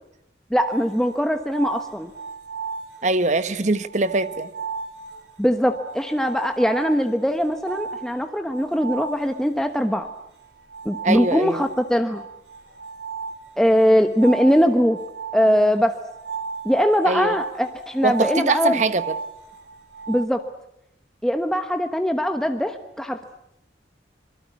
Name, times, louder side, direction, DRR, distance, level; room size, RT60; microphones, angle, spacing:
voice 1, 0.5-2.1 5.4-10.1 10.8-12.2 13.6-15.0 15.3-16.0 16.6-18.8 20.1-20.4 21.2-23.2, equal, 5° left, 6 dB, 1.0 m, -21 dB
sound 1, 0.6-3.4 3.7-20.3, right 5 dB, 80° right, 4.0 m, -36 dB
voice 2, 3.0-4.5 11.0-11.6 17.0-17.4 18.0-19.2, right 2 dB, 40° right, 13 dB, 1.1 m, -22 dB
26.5 x 22.0 x 8.3 m, 0.80 s
head